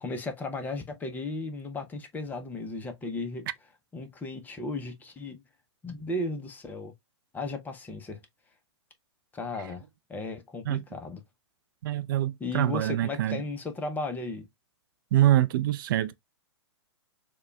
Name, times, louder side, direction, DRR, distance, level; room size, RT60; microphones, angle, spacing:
voice 1, 0.0-3.5 3.9-5.4 5.8-6.9 7.3-8.2 9.3-9.8 10.1-11.2 12.4-14.5, left 2 dB, 10° left, 0.6 m, -35 dB
voice 2, 11.8-13.4 15.1-16.2, right 13 dB, 45° right, 0.4 m, -25 dB
6.5 x 2.2 x 2.2 m
figure-of-eight pair, 115°, 15 cm